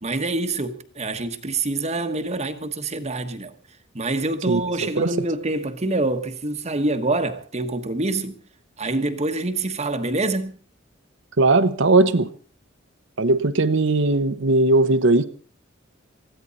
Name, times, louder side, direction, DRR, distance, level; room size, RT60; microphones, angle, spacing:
voice 1, 0.0-3.5 3.9-8.4 8.8-10.5, right 2 dB, 35° right, 1.2 m, -26 dB
voice 2, 11.4-12.3 13.2-15.2, right 2 dB, 65° right, 0.9 m, -18 dB
20.0 x 14.5 x 4.1 m
head